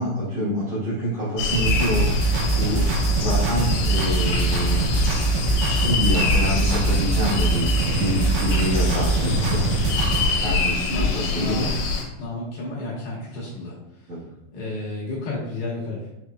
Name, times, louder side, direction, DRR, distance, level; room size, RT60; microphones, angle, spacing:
voice 1, 0.0-2.1 2.5-4.8 5.7-9.6 10.4-11.7 14.1-14.2, equal, 65° right, -12 dB, 1.8 m, -27 dB
sound 1, 1.4-12.0, left 4 dB, 85° left, 3.1 m, -25 dB
sound 2, 1.5-10.3, right 3 dB, 80° right, 2.6 m, -23 dB
voice 2, 10.9-11.7 12.1-14.1 14.5-16.0, left 2 dB, 70° left, -6 dB, 2.6 m, -32 dB
6.8 x 3.0 x 2.2 m, 0.92 s
omnidirectional pair, 5.1 m